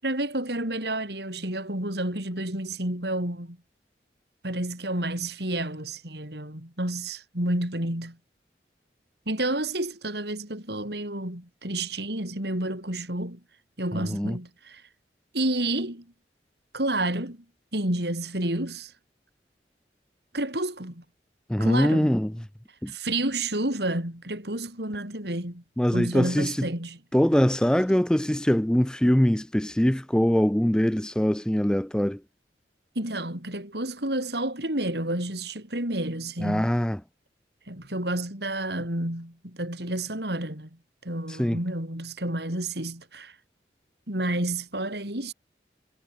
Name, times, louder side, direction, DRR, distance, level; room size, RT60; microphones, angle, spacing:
voice 1, 0.0-3.6 4.4-8.2 9.3-13.4 13.8-14.8 15.3-16.1 16.7-17.4 17.7-18.9 20.3-21.0 21.6-22.2 22.9-25.6 25.9-27.0 27.9-28.0 33.0-36.7 37.7-43.4 44.1-45.3, right 1 dB, 65° right, 5.8 m, -30 dB
voice 2, 13.9-14.4 21.5-22.3 22.8-22.9 25.8-26.7 27.1-32.2 36.4-37.0 41.4-41.6, equal, 5° left, 0.4 m, -23 dB
head